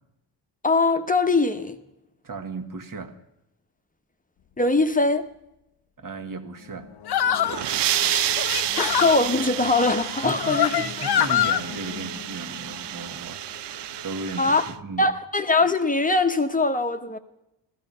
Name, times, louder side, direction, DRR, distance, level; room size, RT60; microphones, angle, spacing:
voice 1, 0.6-1.8 4.6-5.3 8.0-8.4 8.8-10.7 14.4-14.6 15.0-17.2, left 3 dB, 20° left, 0.9 m, -22 dB
voice 2, 2.2-3.2 6.0-6.9 10.2-13.7 14.0-15.1, right 3 dB, 50° right, 1.6 m, -36 dB
sound 1, 4.4-4.5 6.5-14.8, left 9 dB, 85° left, 1.1 m, -42 dB
sound 2, 7.1-7.6 8.4-9.2 10.1-11.6, left 10 dB, 65° left, 0.8 m, -24 dB
sound 3, 7.3-14.7, right 13 dB, 75° right, 0.6 m, -29 dB
14.5 x 14.0 x 5.5 m
cardioid pair, 105°, 43 cm